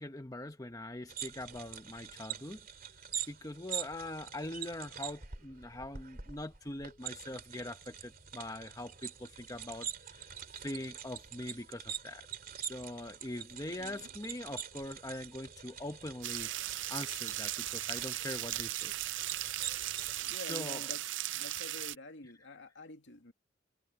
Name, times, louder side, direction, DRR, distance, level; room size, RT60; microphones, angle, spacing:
voice 1, 0.0-2.6 3.3-12.3 12.6-18.9 20.5-20.9, left 1 dB, 20° left, 1.2 m, -43 dB
sound 1, 1.1-20.4, right 9 dB, 50° right, 2.9 m, -45 dB
voice 2, 13.6-14.1 20.2-21.1 21.3-23.3, left 2 dB, 70° left, 2.5 m, -48 dB
sound 2, 16.2-21.9, right 14 dB, 75° right, 0.5 m, -37 dB
head